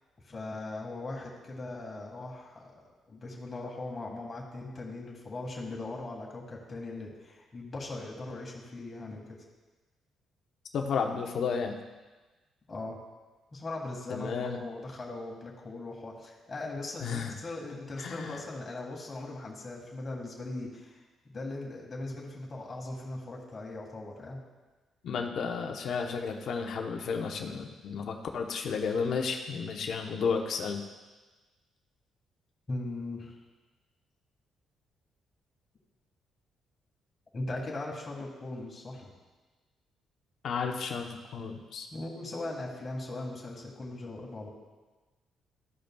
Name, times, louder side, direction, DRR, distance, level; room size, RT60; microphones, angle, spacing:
voice 1, 0.2-2.8 3.1-9.4 12.7-13.0 13.5-24.4 32.7-33.4 37.3-39.1 41.9-44.5, left 2 dB, 35° left, -2 dB, 1.7 m, -39 dB
voice 2, 10.7-11.8 14.1-14.6 17.0-17.4 18.0-18.4 25.0-30.8 40.4-41.9, left 5 dB, 65° left, 3 dB, 0.9 m, -32 dB
14.0 x 5.2 x 2.3 m, 1.3 s
cardioid pair, 90°, 0 cm